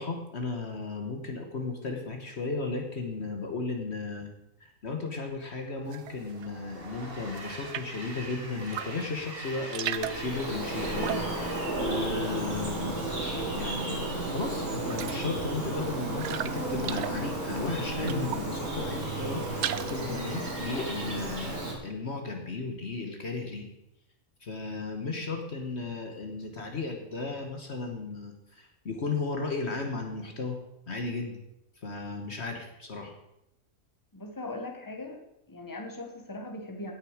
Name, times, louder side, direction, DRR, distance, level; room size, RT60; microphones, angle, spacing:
voice 1, 0.0-4.3 4.6-12.9 13.5-23.7 24.4-30.6 30.9-31.4 31.8-33.1, left 3 dB, 50° left, 4 dB, 1.5 m, -35 dB
Train, 5.7-13.2, right 1 dB, 40° right, 1.9 m, -44 dB
sound 1, 5.9-6.5 6.9-8.1 8.6-9.1 9.4-12.9 13.1-13.8 14.2-14.3 14.6-18.6 19.0-20.1, right 10 dB, 65° right, 0.8 m, -38 dB
Bird vocalization bird call bird song, 9.7-21.7, right 2 dB, 85° right, 3.5 m, -33 dB
voice 2, 34.1-35.2 35.5-36.9, left 2 dB, 15° left, 2 dB, 1.5 m, -39 dB
16.5 x 6.5 x 4.9 m, 0.85 s
omnidirectional pair, 1.5 m